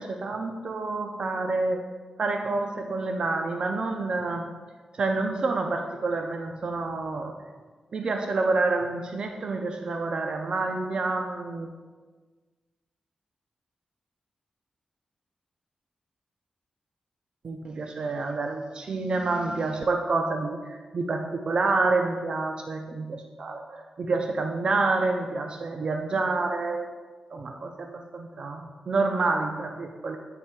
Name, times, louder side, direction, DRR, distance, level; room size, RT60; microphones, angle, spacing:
voice 1, 0.0-1.8 2.2-4.5 4.9-7.3 7.9-11.7 17.4-26.9 27.3-30.2, right 3 dB, 45° right, 3 dB, 0.4 m, -28 dB
8.6 x 3.2 x 4.5 m, 1.4 s
wide cardioid pair, 175°, 2 cm